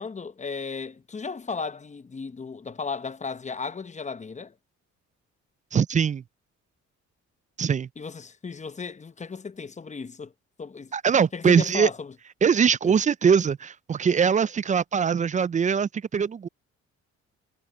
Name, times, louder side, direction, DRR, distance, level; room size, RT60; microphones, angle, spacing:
voice 1, 0.0-4.5 8.0-10.3 10.6-10.9 11.3-12.1 12.8-12.9, left 5 dB, 25° left, 0.8 m, -35 dB
voice 2, 5.7-6.2 7.6-7.9 10.9-11.9 12.4-16.5, right 7 dB, 25° right, 0.3 m, -22 dB
cardioid pair, 90°, 30 cm